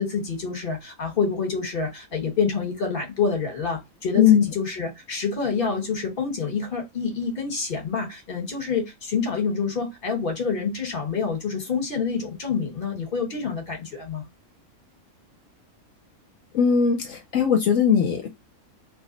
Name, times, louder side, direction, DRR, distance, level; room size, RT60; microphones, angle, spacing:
voice 1, 0.0-14.3, left 5 dB, 45° left, 1.3 m, -27 dB
voice 2, 16.5-18.3, left 7 dB, 75° left, 1.0 m, -19 dB
3.1 x 2.1 x 3.8 m
omnidirectional pair, 1.4 m